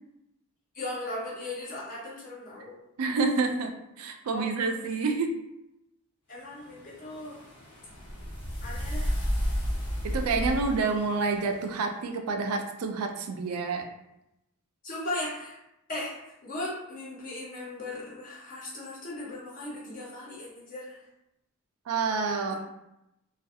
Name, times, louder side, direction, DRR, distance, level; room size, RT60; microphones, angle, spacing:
voice 1, 0.7-2.7 4.3-4.7 6.3-7.4 8.6-9.2 14.8-15.6 15.9-16.2 16.4-21.0, left 1 dB, 35° left, -5 dB, 0.6 m, -37 dB
voice 2, 3.0-3.7 4.0-5.3 10.0-13.8 21.9-22.5, right 4 dB, 80° right, 5 dB, 0.4 m, -28 dB
sound 1, 6.5-11.9, equal, 80° left, 1.1 m, -33 dB
2.4 x 2.3 x 2.6 m, 0.88 s
head